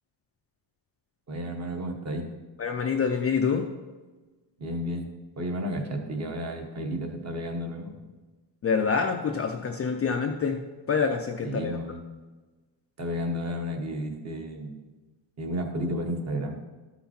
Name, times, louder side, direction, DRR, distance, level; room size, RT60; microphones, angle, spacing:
voice 1, 1.3-2.3 4.6-5.1 5.4-7.9 11.4-12.0 13.0-14.8 15.4-16.6, equal, 35° right, 3 dB, 1.1 m, -32 dB
voice 2, 2.6-3.7 8.6-10.6 10.9-11.7, left 5 dB, 30° left, 3 dB, 0.4 m, -26 dB
12.5 x 5.8 x 4.3 m, 1.2 s
cardioid pair, 165°, 47 cm